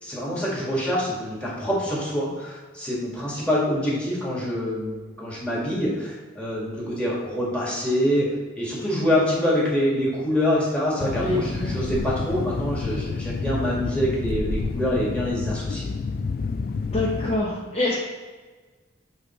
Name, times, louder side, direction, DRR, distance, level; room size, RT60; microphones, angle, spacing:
voice 1, 0.0-8.3 8.6-15.9, equal, 5° left, -7 dB, 1.9 m, -25 dB
sound 1, 11.0-17.4, left 4 dB, 50° left, 0.3 m, -29 dB
voice 2, 11.1-11.8 16.9-18.0, left 2 dB, 35° left, -5 dB, 0.8 m, -25 dB
7.9 x 3.4 x 4.3 m, 1.3 s
head